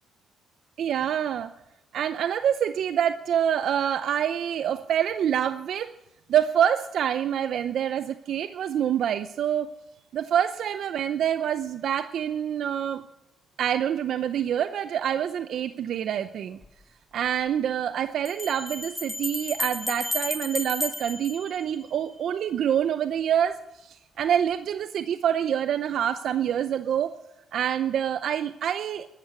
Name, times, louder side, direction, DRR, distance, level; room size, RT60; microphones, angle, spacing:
voice 1, 0.8-1.5 1.9-5.9 6.3-9.7 10.1-13.0 13.6-16.6 17.1-27.1 27.5-29.1, right 9 dB, 70° right, 11 dB, 0.6 m, -26 dB
Bell, 16.6-16.7 18.2-22.2, left 1 dB, 15° left, 1.7 m, -33 dB
13.0 x 12.5 x 8.1 m, 0.91 s
cardioid pair, 90°, 0 cm